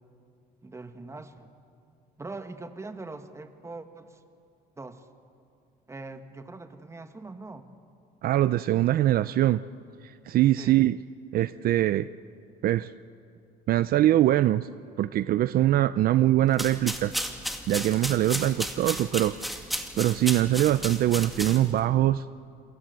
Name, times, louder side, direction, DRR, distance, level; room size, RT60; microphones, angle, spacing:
voice 1, 0.6-1.5 2.2-4.2 4.8-5.1 5.9-7.6 10.6-10.8, right 3 dB, 15° right, 8 dB, 1.8 m, -42 dB
voice 2, 8.2-9.6 10.0-11.0 11.3-12.1 12.6-12.9 13.7-14.7 15.0-17.1 17.7-19.3 20.0-22.2, right 13 dB, 60° right, 15 dB, 0.5 m, -23 dB
sound 1, 16.5-21.8, equal, ahead, 2.4 m, -34 dB
29.0 x 22.0 x 8.1 m, 2.5 s
cardioid pair, 110°, 17 cm